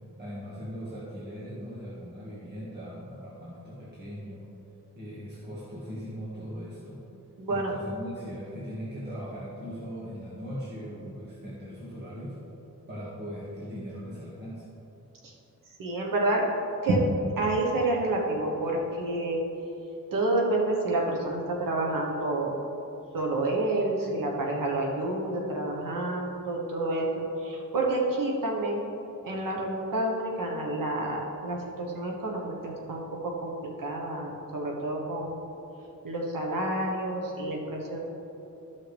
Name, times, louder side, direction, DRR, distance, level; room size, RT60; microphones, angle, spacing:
voice 1, 0.2-4.4 5.0-7.0 7.5-12.4 12.9-14.6, equal, 30° right, -9 dB, 1.9 m, -39 dB
voice 2, 7.4-7.7 10.8-11.1 15.2-15.3 15.8-16.5 16.8-17.0 17.4-19.4 20.1-22.5 23.1-28.9 29.2-35.4 36.0-38.0, right 2 dB, 90° right, -1 dB, 1.4 m, -29 dB
13.5 x 5.7 x 3.5 m, 2.9 s
wide cardioid pair, 160°, 32 cm